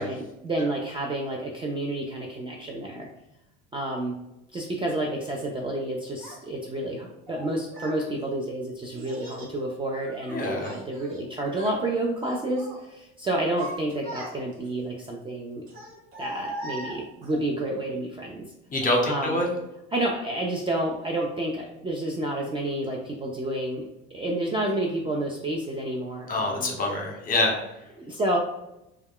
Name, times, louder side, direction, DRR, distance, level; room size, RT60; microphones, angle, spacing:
voice 1, 0.0-3.1 3.7-4.1 4.5-15.6 16.2-18.4 19.1-19.4 19.9-23.8 24.1-26.7 28.0-28.4, right 1 dB, 20° right, -1 dB, 0.4 m, -30 dB
Child speech kid speaking, 6.2-6.4 7.3-8.0 8.9-9.5 10.0-11.2 11.5-11.8 12.2-12.8 13.3-14.7 15.7-17.4, right 1 dB, 75° right, 1.1 m, -39 dB
voice 2, 10.3-10.7 18.7-19.5 26.3-27.6, left 2 dB, 30° left, 1 dB, 0.8 m, -25 dB
2.2 x 2.2 x 3.5 m, 0.89 s
supercardioid pair, 90°, 30 cm